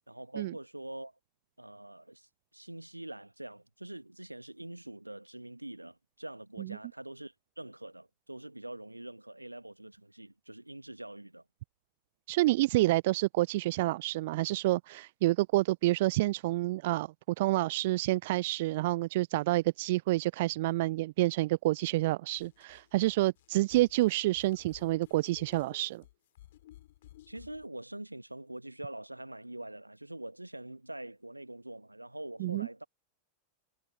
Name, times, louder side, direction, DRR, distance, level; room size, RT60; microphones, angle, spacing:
voice 1, 0.1-1.1 1.6-11.4 27.3-32.8, right 1 dB, 85° right, 1.6 m, -44 dB
voice 2, 12.3-17.1 17.4-26.0 32.4-32.7, right 18 dB, 50° right, 0.5 m, -28 dB
sound 1, 22.4-27.7, left 14 dB, 55° left, 3.3 m, -57 dB
figure-of-eight pair, 90°, 0 cm